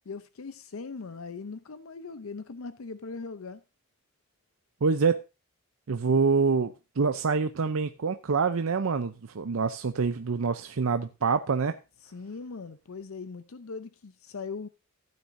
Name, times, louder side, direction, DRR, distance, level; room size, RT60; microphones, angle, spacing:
voice 1, 0.1-3.6 12.0-14.7, left 4 dB, 85° left, 0.6 m, -40 dB
voice 2, 4.8-5.2 5.9-11.8, right 5 dB, 90° right, 0.6 m, -26 dB
15.0 x 9.4 x 2.6 m
head